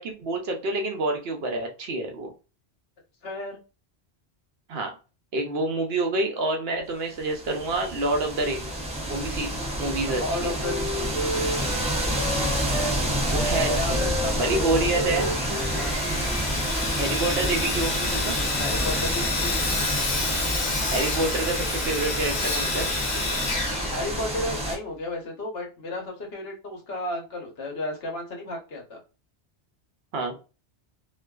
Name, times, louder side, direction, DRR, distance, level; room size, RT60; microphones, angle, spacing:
voice 1, 0.0-2.3 4.7-4.9 5.3-8.8 9.1-9.5 9.8-10.6 13.3-14.0 14.4-15.3 17.0-18.3 20.9-22.9 30.1-30.4, right 2 dB, 70° right, 3 dB, 0.9 m, -27 dB
voice 2, 3.2-3.6 9.5-9.6 10.0-11.7 13.6-14.9 15.8-16.0 18.6-19.7 23.9-29.0, left 1 dB, 65° left, 0 dB, 1.1 m, -33 dB
sound 1, 7.2-24.7, equal, 10° right, 0.3 m, -29 dB
Wind instrument woodwind instrument, 9.0-13.0 13.3-17.8, equal, 35° right, 0.8 m, -33 dB
Sawing, 15.1-24.6, left 3 dB, 50° left, 0.7 m, -29 dB
2.5 x 2.3 x 2.2 m, 0.32 s
omnidirectional pair, 1.1 m